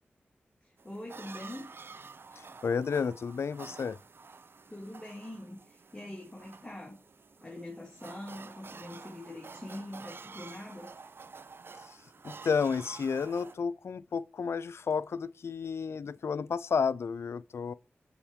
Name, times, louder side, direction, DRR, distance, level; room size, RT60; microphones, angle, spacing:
voice 1, 0.6-1.7 4.7-7.0 7.4-10.9, left 1 dB, 25° left, 2.1 m, -44 dB
sound 1, 0.8-13.6, right 4 dB, 60° right, 0.4 m, -49 dB
voice 2, 2.4-4.0 11.9-12.0 12.2-17.7, left 6 dB, 75° left, 0.3 m, -31 dB
7.1 x 4.3 x 3.6 m
cardioid pair, 45°, 4 cm